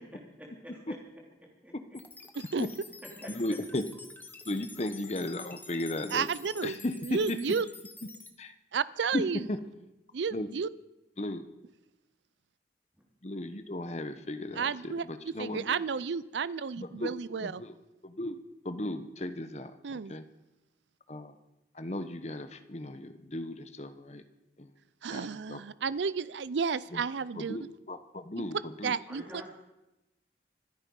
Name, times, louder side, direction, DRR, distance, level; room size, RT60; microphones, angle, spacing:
voice 1, 0.4-0.9 1.6-1.7 3.2-3.6 29.1-29.5, equal, 10° right, -1 dB, 3.2 m, -46 dB
sound 1, 1.9-8.3, left 3 dB, 10° left, 0.9 m, -49 dB
voice 2, 2.3-2.7 6.1-6.7 7.1-7.7 8.7-9.4 10.1-10.7 14.6-15.0 15.4-17.6 19.8-20.1 25.0-27.6 28.8-29.2, right 5 dB, 80° right, 18 dB, 0.5 m, -32 dB
voice 3, 3.2-3.8 4.4-6.3 6.6-7.4 8.4-8.5 9.1-9.6 10.3-10.5 11.2-11.4 13.2-15.8 16.8-17.1 17.4-17.7 18.0-18.4 18.6-20.2 21.1-21.4 21.7-24.2 24.6-24.7 25.1-25.6 26.9-27.0 27.3-28.9, left 1 dB, 35° left, 10 dB, 1.0 m, -36 dB
25.5 x 8.9 x 5.4 m, 0.96 s
head